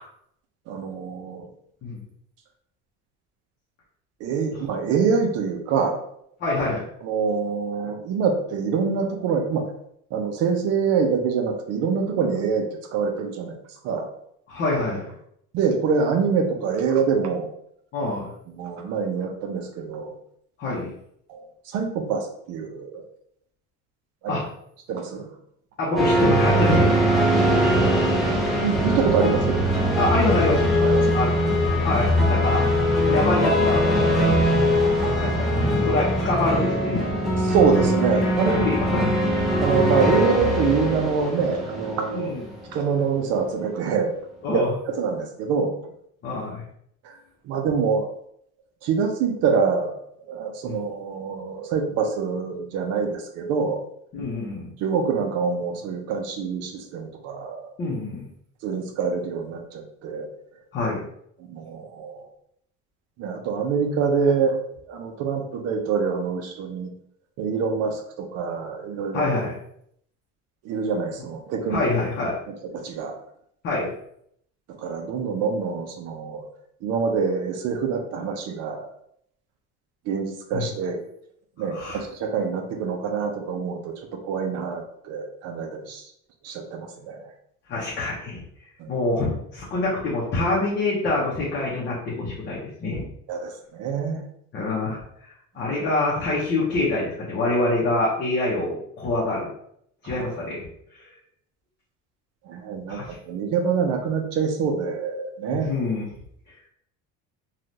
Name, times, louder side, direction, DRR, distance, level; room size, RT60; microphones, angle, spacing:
voice 1, 0.7-1.5 4.2-6.0 7.0-9.7 10.1-13.6 13.8-14.1 15.5-17.5 18.0-18.1 18.5-20.1 21.3-23.0 24.2-24.4 24.9-25.3 28.4-29.6 30.8-31.2 37.5-38.8 39.6-42.3 42.7-44.1 44.4-45.7 47.0-47.2 47.4-48.1 48.8-50.0 50.3-53.8 54.8-57.7 58.6-60.3 61.4-62.2 63.2-66.9 67.4-69.3 70.6-71.8 72.7-73.2 74.8-76.5 76.8-78.9 80.1-81.0 81.6-86.1 86.4-87.3 88.8-88.9 93.3-94.2 100.0-100.2 102.5-103.0 103.2-105.7, right 5 dB, 55° right, 4 dB, 0.5 m, -25 dB
voice 2, 6.4-6.9 14.5-15.1 17.9-18.3 20.6-20.9 24.3-24.4 25.8-26.9 30.0-30.7 31.1-31.5 31.8-32.7 33.1-34.4 35.2-37.0 38.2-39.1 42.1-42.4 44.4-44.7 46.2-46.6 50.7-50.8 54.1-54.7 57.8-58.3 60.7-61.0 69.1-69.5 71.7-72.4 73.6-73.9 80.5-80.7 81.7-82.0 87.7-88.4 88.9-93.0 94.5-95.0 95.5-99.5 100.0-100.7 102.9-103.1 105.5-106.1, left 2 dB, 35° left, -6 dB, 0.7 m, -25 dB
sound 1, 26.0-42.8, equal, ahead, 0.5 m, -21 dB
3.2 x 2.3 x 2.6 m, 0.70 s
cardioid pair, 165°, 30 cm